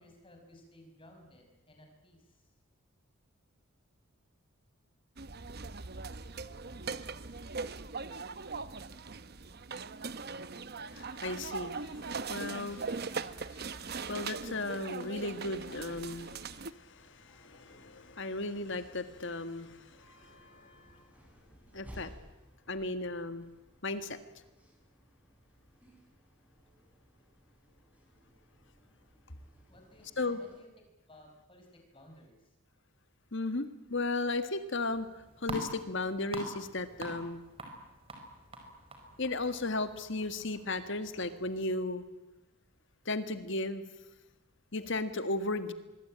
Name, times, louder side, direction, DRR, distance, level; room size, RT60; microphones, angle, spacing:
voice 1, 0.0-2.2 29.7-30.7 31.1-32.5, left 1 dB, 25° left, 3 dB, 6.1 m, -57 dB
sound 1, 5.2-16.7, right 4 dB, 45° right, 0.9 m, -40 dB
voice 2, 10.9-20.4 21.7-22.1 22.7-23.5 23.8-24.2 30.2-30.4 33.3-35.1 35.4-37.4 39.2-42.0 43.0-43.8 44.7-45.7, left 2 dB, 55° left, 10 dB, 1.7 m, -35 dB
sound 2, 16.7-30.6, equal, 5° right, 6.2 m, -59 dB
sound 3, 34.9-41.6, right 1 dB, 25° right, 4.8 m, -46 dB
25.0 x 22.5 x 8.9 m, 1.0 s
head